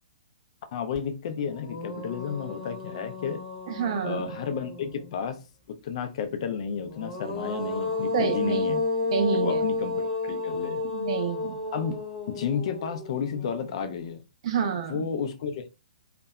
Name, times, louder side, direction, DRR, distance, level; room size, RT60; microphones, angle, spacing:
voice 1, 0.7-3.4 4.0-5.4 5.8-8.8 9.3-10.8 11.7-12.0 12.3-14.2 14.9-15.7, left 6 dB, 50° left, 0.4 m, -32 dB
sound 1, 0.9-1.0 1.4-5.1 6.8-14.0, left 3 dB, 15° left, 0.8 m, -32 dB
voice 2, 3.7-4.2 8.1-8.6 9.1-9.6 10.9-11.6 14.4-15.0, right 7 dB, 45° right, 0.5 m, -28 dB
2.6 x 2.1 x 2.2 m
figure-of-eight pair, 120°, 4 cm